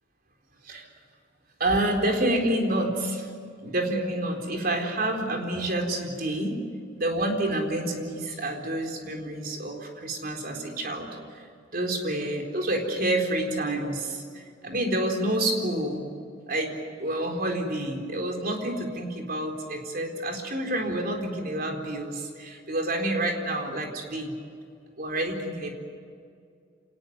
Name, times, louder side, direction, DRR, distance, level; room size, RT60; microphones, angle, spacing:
voice 1, 1.6-3.3 3.6-6.6 7.0-11.1 11.7-14.2 14.6-16.0 16.5-24.3 25.0-25.7, right 1 dB, 50° right, 2 dB, 4.1 m, -28 dB
26.5 x 19.0 x 9.4 m, 2.3 s
head